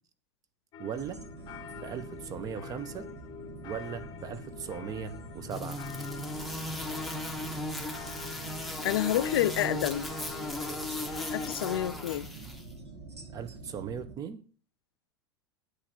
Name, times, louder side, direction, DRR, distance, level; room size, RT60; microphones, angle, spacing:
sound 1, 0.7-12.2, left 8 dB, 35° left, 0.7 m, -47 dB
voice 1, 0.8-1.2 1.8-3.1 3.6-5.8 13.3-14.4, right 7 dB, 25° right, 0.7 m, -38 dB
sound 2, 0.9-14.2, right 3 dB, 80° right, 1.4 m, -46 dB
sound 3, 5.5-12.6, left 1 dB, ahead, 0.9 m, -36 dB
voice 2, 8.8-10.1 11.3-12.3, left 13 dB, 60° left, 0.4 m, -29 dB
8.4 x 3.2 x 6.5 m
figure-of-eight pair, 85°, 14 cm